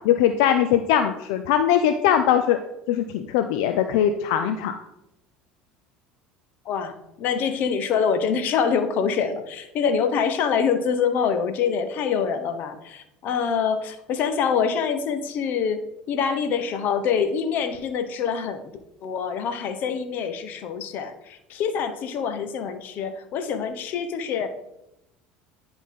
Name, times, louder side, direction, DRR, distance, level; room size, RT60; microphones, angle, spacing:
voice 1, 0.0-2.6 2.9-4.7, left 10 dB, 80° left, 8 dB, 0.5 m, -21 dB
voice 2, 6.6-15.8 16.1-18.7 19.0-24.5, left 6 dB, 60° left, 9 dB, 0.9 m, -25 dB
10.5 x 3.9 x 3.7 m, 0.88 s
supercardioid pair, 90°, 4 cm